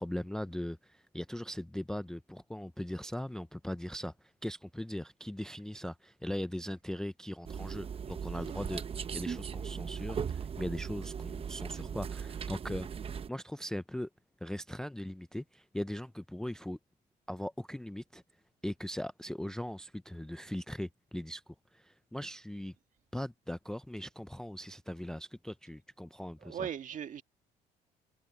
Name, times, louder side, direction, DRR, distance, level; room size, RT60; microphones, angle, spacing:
voice 1, 0.0-12.9 13.3-14.1 14.4-16.8 17.3-18.2 18.6-21.4 21.7-22.7 23.1-26.7, left 1 dB, 5° left, 0.4 m, -39 dB
sound 1, 7.4-13.3, right 7 dB, 35° right, 0.9 m, -38 dB
voice 2, 26.4-27.2, right 9 dB, 50° right, 1.7 m, -39 dB
cardioid pair, 110°, 17 cm